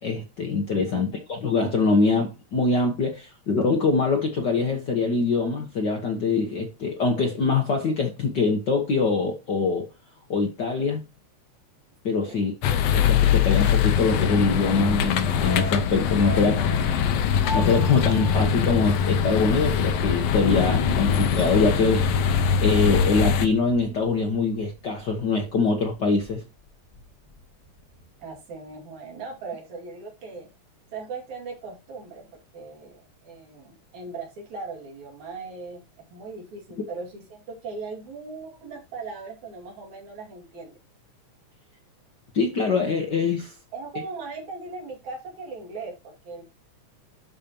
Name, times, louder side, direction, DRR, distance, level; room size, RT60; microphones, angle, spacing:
voice 1, 0.0-9.9 10.3-11.0 12.0-12.5 12.9-16.6 17.5-26.4 42.3-43.5, left 4 dB, 55° left, 1.3 m, -24 dB
voice 2, 0.8-1.4 12.2-12.5 16.3-16.7 28.2-30.5 30.9-35.9 36.1-40.8 43.7-46.5, right 4 dB, 75° right, 3.7 m, -39 dB
sound 1, 12.6-23.5, left 7 dB, 70° left, 1.7 m, -22 dB
sound 2, 15.4-19.8 20.1-20.2, equal, 85° left, 0.4 m, -38 dB
Thunder, 20.4-25.2 25.5-25.6 25.8-26.3 26.8-28.0, left 4 dB, 15° left, 1.6 m, -34 dB
12.0 x 5.2 x 2.9 m
omnidirectional pair, 3.3 m